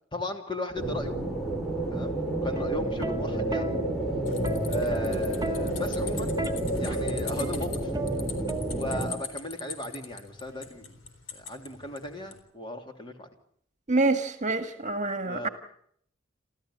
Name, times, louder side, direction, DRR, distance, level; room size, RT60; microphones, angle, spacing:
voice 1, 0.1-1.2 1.9-2.1 2.4-3.8 4.7-6.3 6.8-7.9 8.7-10.9 11.3-13.3 15.2-15.5, left 1 dB, 25° left, 4 dB, 3.0 m, -36 dB
sound 1, 0.8-9.1, right 1 dB, ahead, 4.2 m, -30 dB
Plucked string instrument, 2.4-9.6 10.7-11.0, right 2 dB, 20° right, 1.2 m, -38 dB
sound 2, 4.3-12.4, left 6 dB, 70° left, 3.8 m, -42 dB
voice 2, 13.9-15.5, right 3 dB, 40° right, 8 dB, 1.7 m, -26 dB
29.5 x 13.5 x 8.6 m, 0.67 s
head